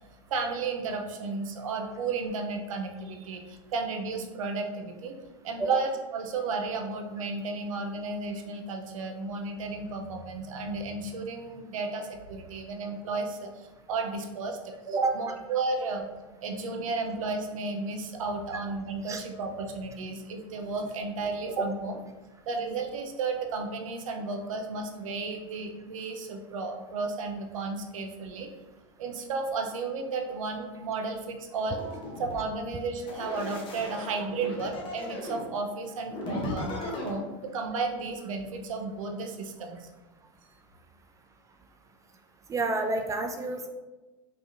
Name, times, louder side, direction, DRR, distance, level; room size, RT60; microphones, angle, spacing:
voice 1, 0.3-5.1 5.4-16.1 16.4-21.9 22.5-28.5 29.0-31.8 32.2-36.7 37.0-39.9, right 3 dB, 85° right, 3 dB, 0.7 m, -33 dB
sound 1, 31.5-32.4 33.0-35.5 36.1-37.1, left 1 dB, 35° left, 1.1 m, -36 dB
voice 2, 42.5-43.7, right 3 dB, 20° right, 5 dB, 0.3 m, -28 dB
5.5 x 2.7 x 2.5 m, 1.2 s
hypercardioid pair, 115°, 17 cm